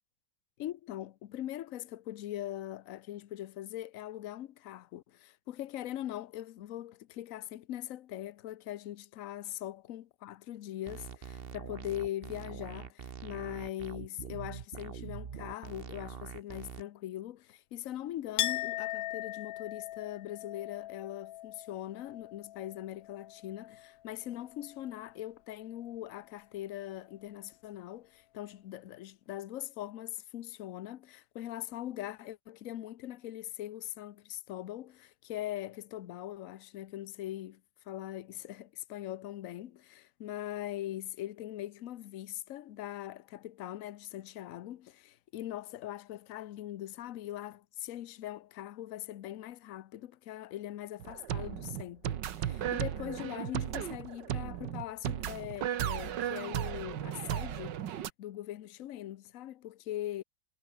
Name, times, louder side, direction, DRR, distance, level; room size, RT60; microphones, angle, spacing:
voice 1, 0.6-37.6 37.9-60.2, left 13 dB, 60° left, 0.9 m, -41 dB
sound 1, 10.9-16.8, right 7 dB, 45° right, 0.8 m, -44 dB
Chink clink, 18.4-23.9 24.2-25.1, left 14 dB, 80° left, 1.5 m, -39 dB
sound 2, 51.0-58.1, right 10 dB, 70° right, 1.7 m, -35 dB
omnidirectional pair, 2.0 m